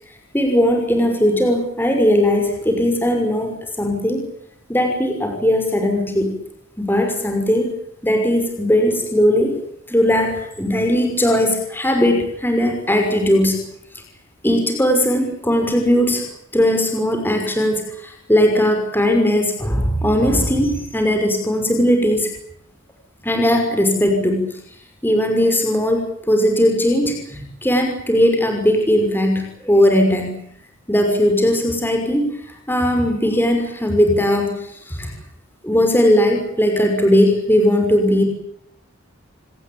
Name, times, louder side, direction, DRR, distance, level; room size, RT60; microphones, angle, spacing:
voice 1, 0.3-4.2 4.7-6.3 6.8-7.7 8.0-9.6 9.9-13.6 14.4-16.3 16.5-22.3 23.2-24.6 25.0-30.3 30.9-35.1 35.6-38.3, equal, 10° left, 4 dB, 5.9 m, -18 dB
27.5 x 20.0 x 8.9 m, 0.71 s
head